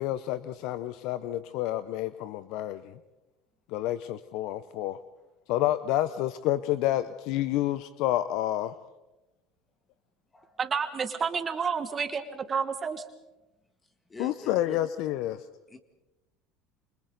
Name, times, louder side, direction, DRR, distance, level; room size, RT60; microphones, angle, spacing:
voice 1, 0.0-3.0 3.7-5.0 5.5-8.7 14.2-15.4, left 14 dB, 65° left, 14 dB, 0.7 m, -29 dB
voice 2, 10.6-13.0, right 6 dB, 30° right, 8 dB, 1.8 m, -30 dB
voice 3, 14.1-14.8 15.7-15.8, left 2 dB, 20° left, 6 dB, 1.8 m, -44 dB
28.0 x 25.5 x 4.0 m, 1.0 s
hypercardioid pair, 85°, 0 cm